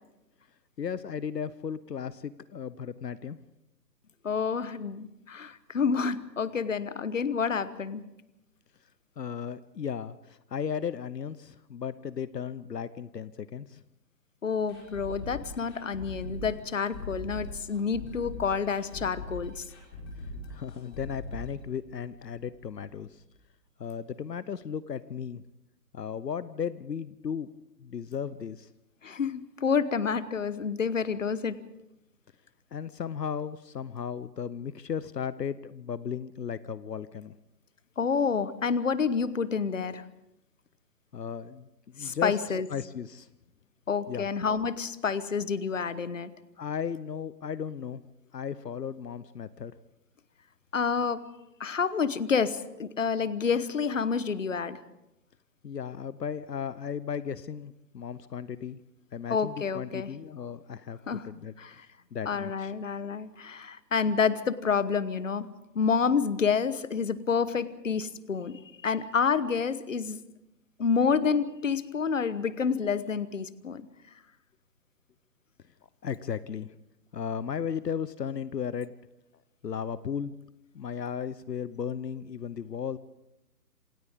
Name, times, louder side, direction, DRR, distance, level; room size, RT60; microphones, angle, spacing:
voice 1, 0.8-3.4 9.2-13.8 20.5-23.2 23.8-25.4 25.9-27.5 27.8-28.7 32.7-37.4 41.1-41.7 41.9-43.3 44.1-44.3 46.6-48.0 48.3-49.7 55.6-58.8 59.1-61.5 62.1-62.7 76.0-76.7 77.1-78.9 79.6-80.3 80.7-83.0, left 7 dB, 75° left, 15 dB, 1.0 m, -35 dB
voice 2, 4.2-8.0 14.4-19.6 29.0-31.6 38.0-40.0 42.0-42.7 43.9-46.3 50.7-51.2 51.6-54.8 59.3-60.1 61.1-61.2 61.6-61.9 62.3-65.5 65.7-70.2 70.8-73.9, left 6 dB, 50° left, 15 dB, 1.2 m, -28 dB
sound 1, 14.7-22.4 22.7-22.8 23.2-23.3, left 2 dB, 15° left, 4.5 m, -41 dB
27.5 x 26.5 x 3.7 m, 0.91 s
hypercardioid pair, 175°, 50 cm